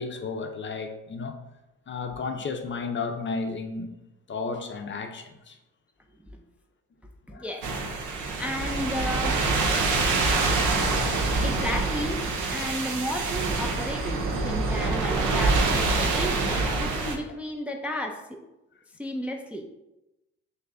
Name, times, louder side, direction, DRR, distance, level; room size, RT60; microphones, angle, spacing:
voice 1, 0.0-1.4 1.9-3.9 4.3-5.6 7.3-7.5 10.7-11.4, left 4 dB, 40° left, 0.6 m, -33 dB
voice 2, 7.3-7.7 8.4-9.4 11.4-12.2 12.5-18.4 19.0-19.6, left 1 dB, 5° right, 0.4 m, -33 dB
sound 1, 7.6-17.2, right 3 dB, 85° right, 0.7 m, -26 dB
sound 2, 9.4-14.9, right 2 dB, 45° right, 1.0 m, -42 dB
6.3 x 2.6 x 2.6 m
cardioid pair, 90°, 30 cm